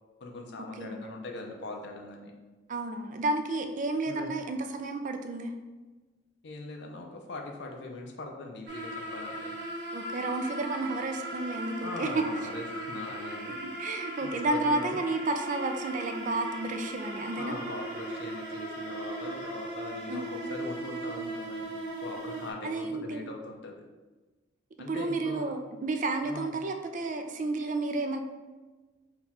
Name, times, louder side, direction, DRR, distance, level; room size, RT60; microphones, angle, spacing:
voice 1, 0.2-2.4 4.1-4.3 6.4-9.5 11.8-13.6 14.2-15.0 17.4-23.8 24.8-25.5 26.2-26.5, left 2 dB, 65° left, 2 dB, 0.5 m, -41 dB
voice 2, 2.7-5.5 9.9-12.3 13.8-17.6 20.1-20.3 22.6-23.3 24.9-28.2, right 2 dB, 40° right, 6 dB, 0.4 m, -31 dB
Strange Pleading Chant, 8.7-22.5, right 1 dB, 60° right, 0.8 m, -38 dB
3.9 x 2.3 x 4.1 m, 1.2 s
head